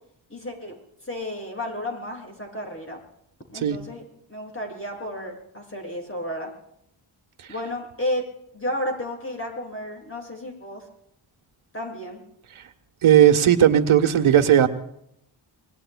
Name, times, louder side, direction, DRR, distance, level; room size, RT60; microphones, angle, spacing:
voice 1, 0.3-0.7 1.0-3.0 3.5-4.0 4.3-6.5 7.5-8.2 8.5-10.8 11.7-12.2, left 1 dB, 25° left, 1 dB, 7.2 m, -32 dB
voice 2, 13.0-14.7, right 10 dB, 90° right, 8 dB, 1.4 m, -16 dB
26.5 x 23.0 x 2.3 m, 0.76 s
wide cardioid pair, 105°, 48 cm